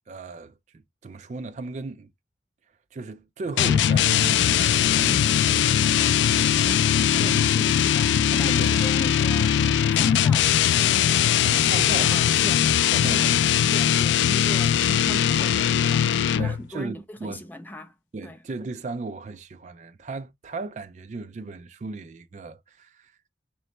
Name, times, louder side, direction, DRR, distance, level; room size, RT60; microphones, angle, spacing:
voice 1, 0.1-2.1 2.9-7.5 8.3-8.8 11.4-13.4 16.4-17.4 18.1-23.2, right 3 dB, 40° right, 0.4 m, -36 dB
sound 1, 3.6-16.7, left 9 dB, 85° left, 0.3 m, -20 dB
voice 2, 7.2-12.6 13.0-13.5 13.7-17.9 18.2-18.4, left 1 dB, 10° left, 0.5 m, -38 dB
3.8 x 3.1 x 3.1 m
head